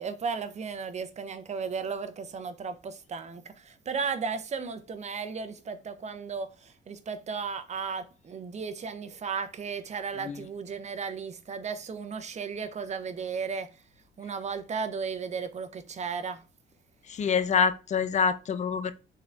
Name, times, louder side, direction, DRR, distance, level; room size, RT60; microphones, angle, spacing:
voice 1, 0.0-13.7 14.2-16.4, right 5 dB, 35° right, 0.5 m, -35 dB
voice 2, 17.1-18.9, left 6 dB, 35° left, 0.4 m, -26 dB
3.7 x 3.3 x 2.3 m
cardioid pair, 90°, 20 cm